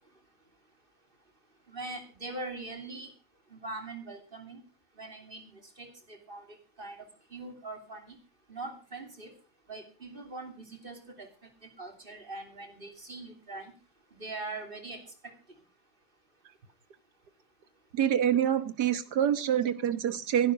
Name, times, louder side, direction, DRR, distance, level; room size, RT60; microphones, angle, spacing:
voice 1, 1.7-3.1 3.5-4.6 5.0-6.4 6.8-8.2 8.5-9.3 9.7-11.3 11.8-13.7 14.1-15.3, right 2 dB, 30° right, 5 dB, 3.2 m, -42 dB
voice 2, 17.9-20.5, right 10 dB, 65° right, 13 dB, 1.7 m, -26 dB
15.5 x 12.0 x 5.0 m, 0.36 s
omnidirectional pair, 1.9 m